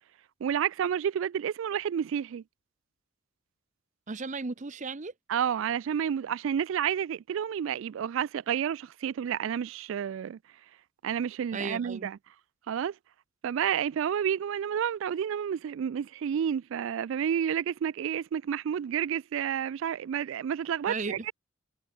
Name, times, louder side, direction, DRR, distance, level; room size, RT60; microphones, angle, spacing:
voice 1, 0.4-2.4 5.3-10.4 11.0-12.2 12.7-12.9 13.4-21.3, right 8 dB, 70° right, 0.3 m, -30 dB
voice 2, 4.1-5.1 11.5-12.1 20.9-21.2, right 4 dB, 35° right, 0.7 m, -35 dB
head